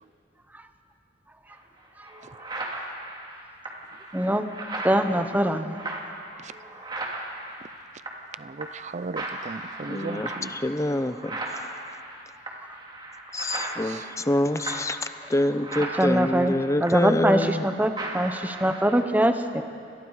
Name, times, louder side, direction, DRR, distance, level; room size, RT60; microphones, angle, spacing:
sound 1, 1.5-1.6 2.0-8.3 8.6-8.9 9.2-17.7 18.0-19.0, right 2 dB, 25° right, 2.6 m, -37 dB
voice 1, 4.1-4.5 4.8-5.8 16.0-16.5 16.8-19.6, right 1 dB, 10° right, 8 dB, 1.0 m, -23 dB
voice 2, 8.4-10.5 13.9-14.0, right 3 dB, 40° right, 16 dB, 0.5 m, -36 dB
voice 3, 9.8-11.4 13.3-15.0 15.3-17.7, left 1 dB, 15° left, 12 dB, 0.7 m, -26 dB
30.0 x 22.5 x 4.9 m, 2.5 s
head